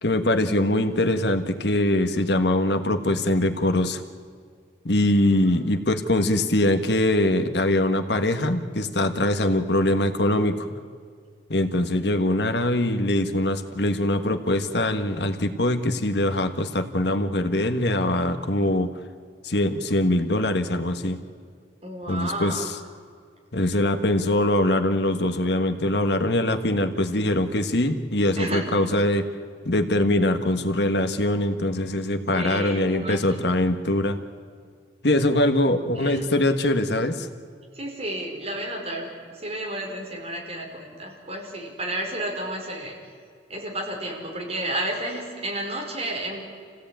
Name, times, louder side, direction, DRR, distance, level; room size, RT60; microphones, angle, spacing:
voice 1, 0.0-4.0 4.8-10.7 11.5-18.9 19.4-21.2 22.1-22.8 23.5-29.3 29.6-34.2 35.0-37.3, left 1 dB, 65° left, 8 dB, 1.5 m, -23 dB
voice 2, 5.2-5.6 21.8-22.7 25.8-25.9 28.4-28.7 32.3-33.4 35.7-36.3 37.7-39.1 39.3-43.0 43.5-46.4, right 1 dB, 35° right, -1 dB, 4.9 m, -32 dB
27.5 x 17.0 x 9.0 m, 2.1 s
head